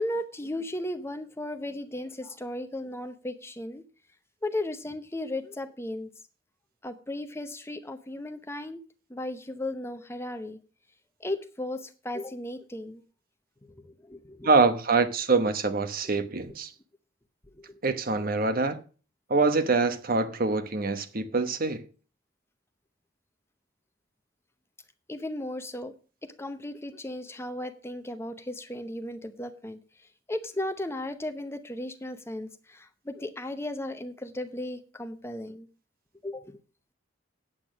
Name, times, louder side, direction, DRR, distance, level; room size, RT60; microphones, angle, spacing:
voice 1, 0.0-3.8 4.4-6.1 6.8-8.8 9.1-10.6 11.2-13.0 13.8-14.5 16.0-16.1 17.5-17.8 25.1-25.9 26.2-29.8 30.3-35.7 36.2-36.6, left 1 dB, 15° left, 0.8 m, -35 dB
voice 2, 14.4-16.7 17.8-18.8 19.3-21.8, right 3 dB, 50° right, 1.0 m, -25 dB
8.8 x 8.3 x 6.2 m
head